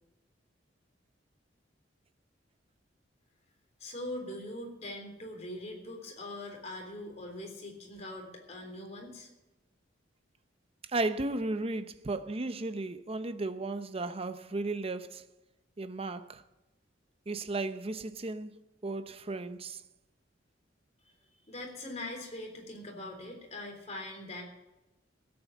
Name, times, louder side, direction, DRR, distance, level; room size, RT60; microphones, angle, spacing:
voice 1, 3.8-9.3 21.1-21.2 21.5-24.4, left 1 dB, 40° left, 3.6 m, -42 dB
voice 2, 10.9-15.2 15.8-16.4 17.3-18.5 18.8-19.8, right 2 dB, 30° right, 0.7 m, -34 dB
16.5 x 8.8 x 7.2 m
head